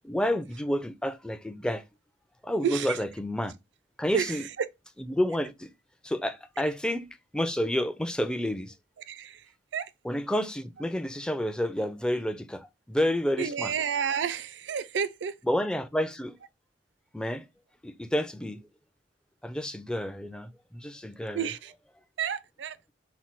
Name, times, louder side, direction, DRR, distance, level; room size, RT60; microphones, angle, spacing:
voice 1, 0.1-1.8 2.4-3.5 4.0-4.4 5.1-5.7 6.0-8.7 10.0-13.7 15.5-16.4 17.1-17.5 17.8-18.6 19.4-21.4, left 1 dB, 5° left, 0.3 m, -30 dB
voice 2, 2.6-3.0 4.1-4.7 9.1-9.9 13.4-15.4 21.3-21.7 22.2-22.8, right 7 dB, 70° right, 0.4 m, -31 dB
4.2 x 2.2 x 4.4 m
head